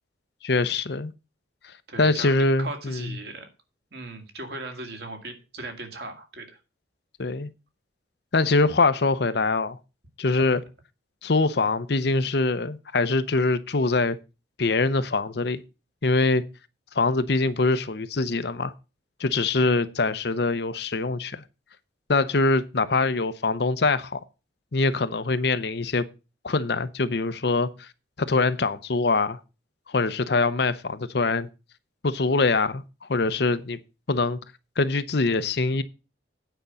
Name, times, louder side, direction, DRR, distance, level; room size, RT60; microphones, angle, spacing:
voice 1, 0.4-1.1 2.0-3.1 7.2-7.5 8.3-9.8 10.2-10.6 11.2-14.2 14.6-15.6 16.0-16.4 16.9-18.7 19.2-21.4 22.1-24.2 24.7-26.0 26.4-27.9 28.2-29.4 29.9-31.5 32.0-33.8 34.1-34.4 34.8-35.8, left 3 dB, 55° left, 0.7 m, -23 dB
voice 2, 1.9-3.5 3.9-6.5 19.6-19.9, right 2 dB, 55° right, 2.1 m, -38 dB
9.1 x 5.3 x 7.0 m
head